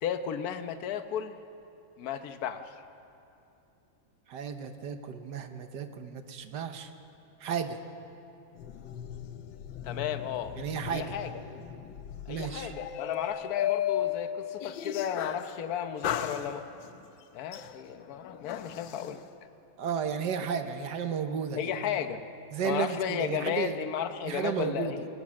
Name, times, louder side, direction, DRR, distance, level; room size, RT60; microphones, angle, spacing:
voice 1, 0.0-1.4 2.0-2.7 9.8-10.5 10.9-11.3 12.3-16.7 17.3-19.2 21.6-22.2 22.6-25.1, left 9 dB, 60° left, 9 dB, 1.3 m, -34 dB
voice 2, 4.3-6.9 7.4-7.8 10.6-11.1 12.3-12.7 19.8-21.6 21.9-22.0 22.5-23.7 24.2-24.9, right 7 dB, 70° right, 8 dB, 1.6 m, -33 dB
sound 1, 8.6-15.5 16.0-17.0 17.5-19.1, left 10 dB, 80° left, 1.5 m, -36 dB
21.0 x 20.5 x 6.4 m, 2.7 s
omnidirectional pair, 2.0 m